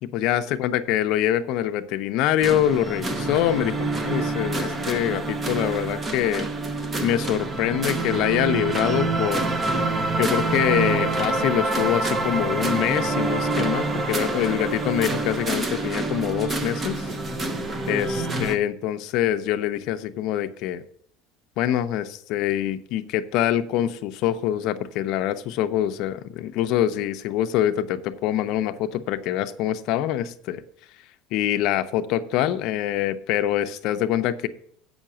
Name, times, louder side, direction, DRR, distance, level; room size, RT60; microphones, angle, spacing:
voice 1, 0.0-6.5 7.0-9.5 10.2-17.0 17.9-20.8 21.6-30.6 31.3-34.5, left 11 dB, 50° left, 10 dB, 0.6 m, -25 dB
sound 1, 2.4-18.6, right 2 dB, 20° right, 0.7 m, -26 dB
8.0 x 5.6 x 7.3 m, 0.63 s
cardioid pair, 165°, 0 cm